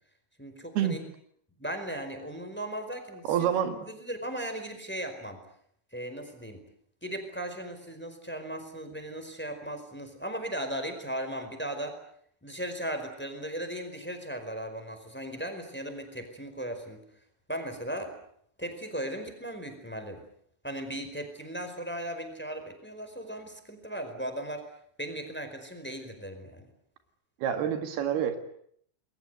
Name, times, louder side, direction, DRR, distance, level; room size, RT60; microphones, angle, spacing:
voice 1, 0.4-1.0 1.6-3.5 3.9-5.4 5.9-6.6 7.0-12.0 12.4-17.0 17.5-18.1 18.6-20.2 20.6-24.7 25.0-26.7, right 1 dB, 5° left, 6 dB, 4.4 m, -37 dB
voice 2, 3.2-3.8 27.4-28.4, right 9 dB, 85° right, 7 dB, 3.8 m, -27 dB
28.5 x 21.5 x 8.0 m, 0.68 s
omnidirectional pair, 4.4 m